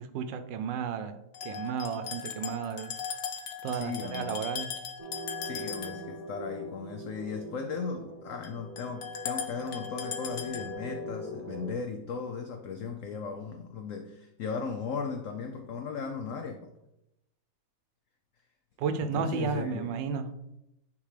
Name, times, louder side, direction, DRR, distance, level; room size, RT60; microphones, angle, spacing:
voice 1, 0.0-2.9 3.6-4.7 18.8-20.2, right 6 dB, 85° right, 1.3 m, -33 dB
sound 1, 1.3-6.2 8.4-8.5 8.8-11.1, left 7 dB, 65° left, 1.1 m, -38 dB
voice 2, 3.7-4.4 5.4-16.7 19.0-19.9, left 5 dB, 90° left, 0.7 m, -37 dB
sound 2, 5.0-11.7, equal, 20° right, 1.7 m, -42 dB
9.6 x 3.6 x 3.2 m
omnidirectional pair, 1.9 m